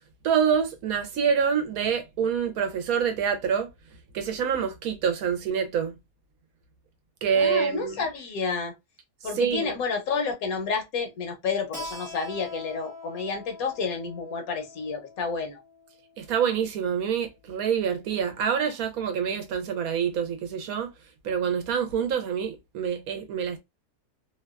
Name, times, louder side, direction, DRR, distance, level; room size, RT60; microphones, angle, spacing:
voice 1, 0.2-3.7 4.1-5.9 7.2-8.0 9.4-9.7 16.2-20.9 21.2-23.6, right 7 dB, 70° right, 1.0 m, -26 dB
voice 2, 7.3-8.7 9.2-15.6, left 5 dB, 70° left, 1.1 m, -30 dB
Keyboard (musical), 11.7-17.0, left 2 dB, ahead, 0.7 m, -43 dB
2.7 x 2.2 x 2.2 m
omnidirectional pair, 1.7 m